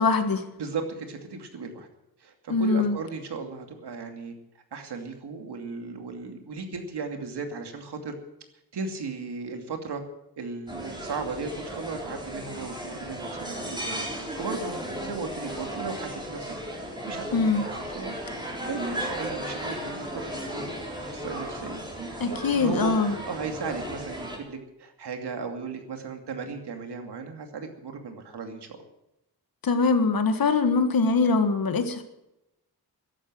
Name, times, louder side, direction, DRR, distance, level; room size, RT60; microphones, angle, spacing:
voice 1, 0.0-0.4 2.5-3.0 17.3-17.6 22.2-23.1 29.6-32.0, left 4 dB, 60° left, 8 dB, 1.7 m, -23 dB
voice 2, 0.6-1.9 2.2-4.3 4.7-8.1 8.7-10.0 10.4-16.5 17.0-18.1 18.7-28.7, right 4 dB, 85° right, 4 dB, 2.6 m, -36 dB
sound 1, 10.7-24.4, equal, 10° right, 4.1 m, -35 dB
14.0 x 12.0 x 7.5 m, 0.89 s
wide cardioid pair, 145°, 39 cm